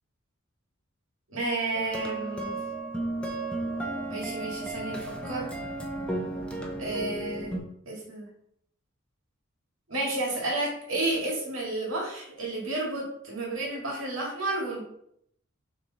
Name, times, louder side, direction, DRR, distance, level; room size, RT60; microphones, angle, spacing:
voice 1, 1.3-2.6 4.1-5.5 6.8-7.6 7.9-8.3 9.9-14.8, right 2 dB, 75° right, -3 dB, 2.3 m, -31 dB
sound 1, 1.8-7.6, right 2 dB, 5° left, 0.8 m, -34 dB
6.5 x 3.5 x 4.2 m, 0.72 s
head